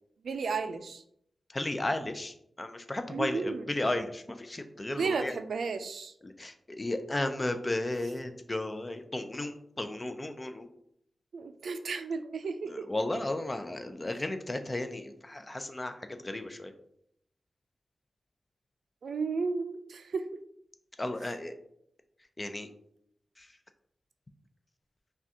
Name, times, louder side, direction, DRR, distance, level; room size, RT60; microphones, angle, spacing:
voice 1, 0.2-1.0 3.1-3.7 4.9-6.1 11.3-12.9 19.0-20.4, right 4 dB, 90° right, 8 dB, 0.3 m, -33 dB
voice 2, 1.5-5.4 6.2-10.7 12.6-16.7 21.0-21.6 22.4-22.7 23.4-23.5, left 1 dB, 30° left, 8 dB, 0.5 m, -34 dB
5.7 x 2.3 x 2.8 m, 0.72 s
wide cardioid pair, 70°, 0 cm